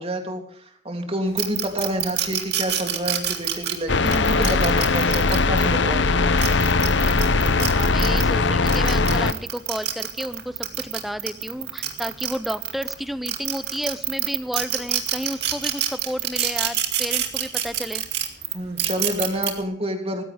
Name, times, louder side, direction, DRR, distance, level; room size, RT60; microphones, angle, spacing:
voice 1, 0.0-6.1 18.5-20.2, equal, 30° right, 3 dB, 3.1 m, -28 dB
sound 1, 1.4-5.7 6.2-8.3 8.7-12.9 13.3-19.5, right 11 dB, 60° right, 2.3 m, -26 dB
sound 2, 3.9-9.3, left 3 dB, 75° left, 0.9 m, -20 dB
voice 2, 7.7-18.0, equal, ahead, 14 dB, 0.7 m, -31 dB
19.0 x 15.5 x 3.6 m, 0.63 s
head